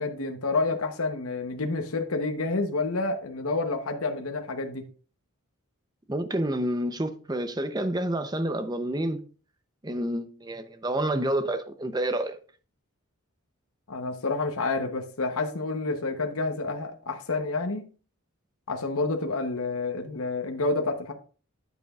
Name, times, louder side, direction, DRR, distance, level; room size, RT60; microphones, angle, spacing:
voice 1, 0.0-4.8 13.9-17.8 18.7-21.1, left 3 dB, 70° left, 0.9 m, -29 dB
voice 2, 6.1-9.2 9.8-12.4, right 1 dB, 20° right, 0.7 m, -29 dB
9.1 x 8.4 x 2.4 m
head